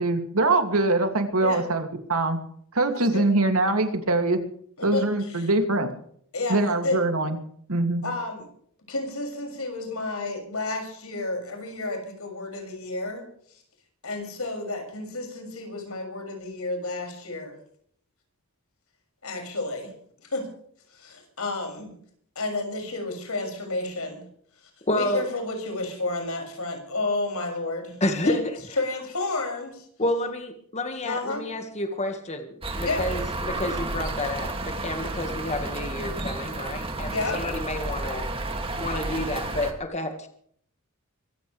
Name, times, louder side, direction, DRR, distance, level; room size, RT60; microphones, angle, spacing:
voice 1, 0.0-2.4 2.7-4.4 4.8-5.9 6.5-7.4 7.7-8.0, right 2 dB, 80° right, 6 dB, 2.6 m, -23 dB
voice 2, 4.8-5.5 6.3-7.0 8.0-8.5 8.9-13.6 14.0-17.6 19.2-19.9 20.2-20.5 20.9-22.0 22.3-24.2 24.6-28.0 28.2-28.4 28.8-29.9 31.0-31.5 32.8-33.0 37.1-37.4, left 2 dB, 80° left, 4 dB, 6.6 m, -31 dB
voice 3, 24.9-25.3 28.0-28.6 30.0-38.3 38.8-40.3, left 1 dB, 30° left, 6 dB, 1.8 m, -29 dB
sound 1, 32.6-39.7, right 2 dB, 25° right, 2.4 m, -31 dB
24.5 x 15.0 x 3.4 m, 0.62 s
head